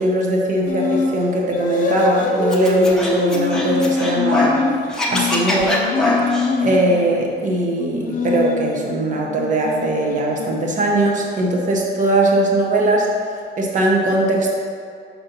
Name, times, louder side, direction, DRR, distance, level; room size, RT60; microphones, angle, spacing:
voice 1, 0.0-4.6 5.1-5.8 6.6-13.1 13.6-14.5, right 1 dB, 40° right, -1 dB, 0.9 m, -19 dB
sound 1, 0.7-1.1 1.5-7.2 7.9-10.8, left 4 dB, 45° left, 0.7 m, -24 dB
Scratching (performance technique), 2.5-4.6 4.9-6.5, left 1 dB, 5° left, 0.7 m, -23 dB
5.7 x 4.3 x 5.3 m, 2.3 s
cardioid pair, 175°, 19 cm